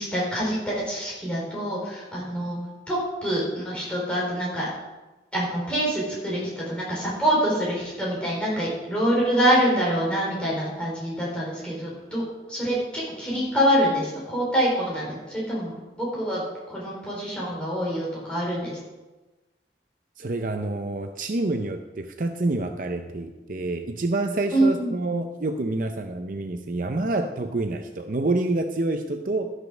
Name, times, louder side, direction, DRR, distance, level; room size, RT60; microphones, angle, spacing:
voice 1, 0.0-2.6 2.9-4.7 5.3-12.2 12.5-16.4 16.7-18.7 24.5-24.9, equal, 5° left, -6 dB, 3.9 m, -25 dB
voice 2, 20.2-29.5, right 2 dB, 45° right, 6 dB, 0.5 m, -27 dB
12.0 x 6.3 x 6.1 m, 1.1 s
head